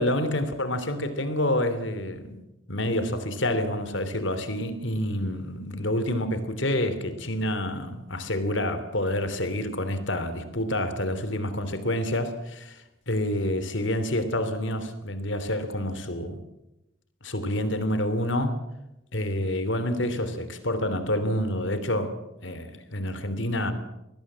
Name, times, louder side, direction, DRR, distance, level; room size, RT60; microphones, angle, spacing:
voice 1, 0.0-2.4 2.7-16.4 17.2-18.6 19.1-23.7, left 1 dB, 60° left, 11 dB, 3.0 m, -28 dB
23.5 x 19.5 x 7.6 m, 0.93 s
head